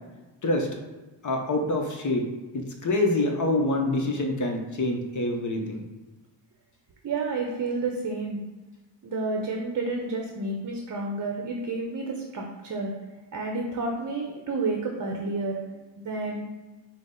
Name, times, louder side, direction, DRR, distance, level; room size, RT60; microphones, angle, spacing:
voice 1, 1.2-2.3 2.5-5.8, left 2 dB, 40° left, 3 dB, 0.7 m, -26 dB
voice 2, 7.0-8.4 9.0-12.9 13.3-16.5, right 3 dB, 40° right, 1 dB, 0.7 m, -30 dB
6.2 x 2.1 x 3.7 m, 1.2 s
cardioid pair, 95°, 45 cm